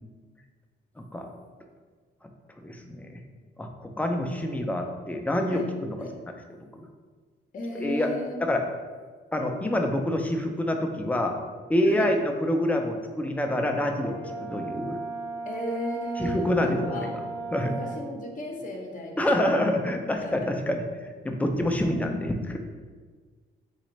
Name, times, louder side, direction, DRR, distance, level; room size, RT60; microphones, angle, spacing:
voice 1, 2.6-3.2 3.6-6.0 6.8-6.9 7.7-8.1 8.4-8.6 9.3-11.4 11.7-15.0 16.2-17.1 17.5-17.7 19.2-20.8 21.2-22.6, left 1 dB, 5° left, 3 dB, 0.4 m, -26 dB
voice 2, 7.5-8.5 11.8-12.1 15.5-17.1 17.6-19.6 20.2-20.5 21.8-22.3, left 1 dB, 40° left, 2 dB, 0.7 m, -35 dB
Brass instrument, 14.0-18.1, right 3 dB, 80° right, 0.8 m, -36 dB
4.0 x 2.5 x 3.1 m, 1.5 s
cardioid pair, 90°, 20 cm